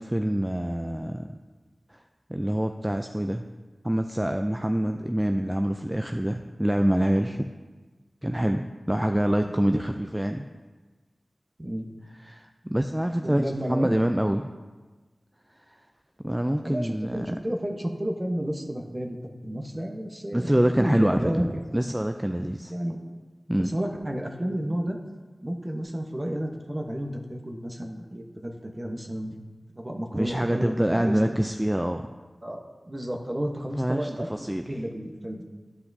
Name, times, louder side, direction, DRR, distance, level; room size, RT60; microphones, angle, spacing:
voice 1, 0.0-1.3 1.9-2.0 2.3-3.5 3.8-7.5 8.2-10.4 12.1-14.5 16.2-17.4 20.3-22.7 23.5-23.8 30.1-32.1 33.8-34.6, right 1 dB, 15° right, 5 dB, 0.3 m, -26 dB
voice 2, 13.2-13.9 16.6-19.2 19.4-21.4 22.7-23.0 23.7-25.0 25.4-29.4 29.8-31.4 32.4-35.4, equal, 30° right, 2 dB, 1.0 m, -32 dB
12.0 x 5.5 x 2.7 m, 1.3 s
wide cardioid pair, 50°, 0 cm